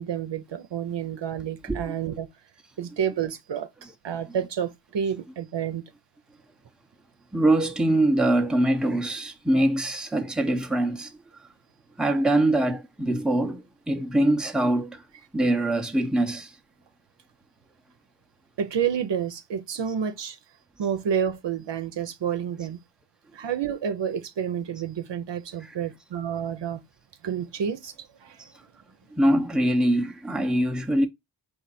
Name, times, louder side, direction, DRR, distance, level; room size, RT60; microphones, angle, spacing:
voice 1, 0.0-2.3 2.8-3.7 4.0-5.8 18.6-20.4 20.8-22.8 23.3-26.8 27.2-27.9 28.2-28.4, right 8 dB, 70° right, 0.8 m, -29 dB
voice 2, 7.3-11.1 12.0-15.0 15.3-16.5 28.4-28.5 29.1-31.1, right 1 dB, ahead, 0.7 m, -23 dB
5.0 x 2.6 x 4.1 m
wide cardioid pair, 80°, 44 cm